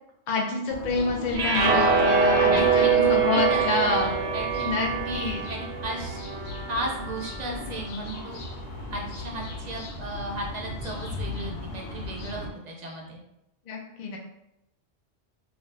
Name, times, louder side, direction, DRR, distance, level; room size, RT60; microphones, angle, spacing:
voice 1, 0.3-4.1 4.6-5.4 13.7-14.2, left 3 dB, 50° left, 0 dB, 0.5 m, -28 dB
sound 1, 0.7-12.5, left 2 dB, 85° left, 0.9 m, -38 dB
sound 2, 1.3-7.6, right 5 dB, 85° right, 0.9 m, -24 dB
voice 2, 2.5-6.2 6.7-8.4 8.9-13.2, right 1 dB, 55° right, -1 dB, 0.5 m, -35 dB
2.5 x 2.4 x 3.1 m, 0.85 s
omnidirectional pair, 1.1 m